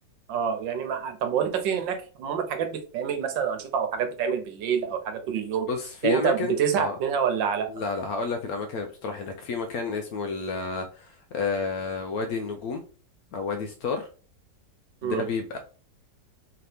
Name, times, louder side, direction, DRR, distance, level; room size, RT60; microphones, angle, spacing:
voice 1, 0.3-5.7 6.0-7.7 15.0-15.2, right 7 dB, 90° right, 6 dB, 1.5 m, -27 dB
voice 2, 5.7-7.0 7.7-12.8 13.3-14.1 15.0-15.6, left 4 dB, 70° left, 5 dB, 0.9 m, -30 dB
4.0 x 2.9 x 3.3 m, 0.37 s
omnidirectional pair, 2.0 m